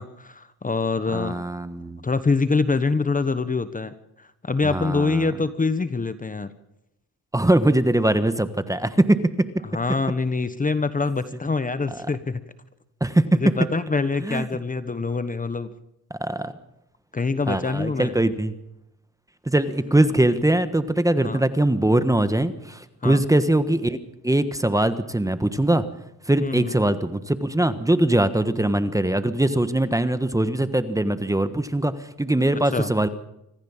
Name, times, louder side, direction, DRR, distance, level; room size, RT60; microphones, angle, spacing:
voice 1, 0.0-1.4 2.0-6.5 9.6-12.4 13.4-15.8 17.1-18.1 21.2-21.4 23.0-23.2 26.4-26.8 32.7-32.9, left 4 dB, 20° left, 12 dB, 1.2 m, -25 dB
voice 2, 1.1-2.0 4.6-5.3 7.3-9.5 11.9-12.0 13.0-13.4 14.2-14.5 16.2-16.5 17.5-18.5 19.5-24.0 24.2-25.8 26.3-33.1, right 1 dB, 10° right, 11 dB, 1.3 m, -21 dB
25.5 x 15.0 x 7.3 m, 0.85 s
cardioid pair, 105°, 38 cm